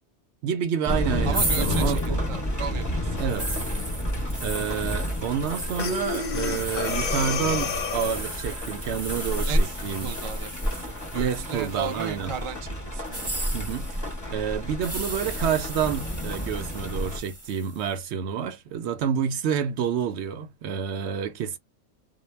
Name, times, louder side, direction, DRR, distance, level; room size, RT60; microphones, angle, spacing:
voice 1, 0.4-2.2 3.2-3.6 4.4-10.1 11.1-12.3 13.5-13.9 14.3-21.6, right 8 dB, 75° right, 0.8 m, -29 dB
sound 1, 0.8-17.2, left 1 dB, 20° left, 0.7 m, -31 dB
voice 2, 1.2-3.5 9.4-13.3, right 5 dB, 50° right, 0.4 m, -36 dB
sound 2, 1.3-12.3 13.0-17.8, right 1 dB, 15° right, 0.7 m, -33 dB
Breathing, 5.8-8.4, left 5 dB, 55° left, 0.6 m, -30 dB
2.1 x 2.1 x 3.1 m
omnidirectional pair, 1.2 m